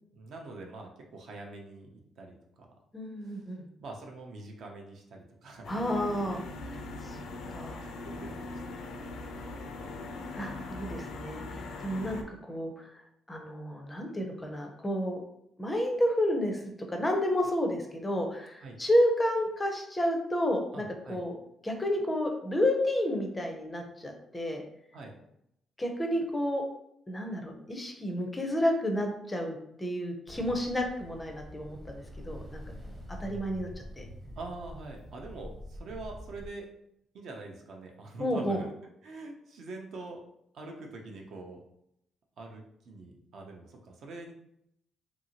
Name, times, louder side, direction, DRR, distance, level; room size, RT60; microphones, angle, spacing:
voice 1, 0.1-2.7 3.8-5.7 6.1-6.3 7.1-9.1 9.8-10.2 18.6-18.8 20.7-21.2 24.9-25.1 34.4-36.7 37.1-38.7 39.0-40.2 40.5-41.6 42.4-44.3, right 2 dB, 60° right, 2 dB, 0.6 m, -45 dB
voice 2, 2.9-3.7 5.7-6.4 6.7-7.2 7.5-7.8 10.3-12.9 13.3-15.2 15.6-16.6 16.9-20.8 21.1-21.3 21.6-24.6 25.8-26.6 27.1-32.6 33.2-33.7 34.0-34.1 38.2-38.6, equal, 15° left, 2 dB, 0.5 m, -30 dB
sound 1, 5.6-12.2, left 3 dB, 80° left, 0.4 m, -41 dB
Ocean, 30.3-36.5, equal, 20° right, 0.7 m, -45 dB
2.9 x 2.7 x 2.8 m, 0.75 s
cardioid pair, 140°, 0 cm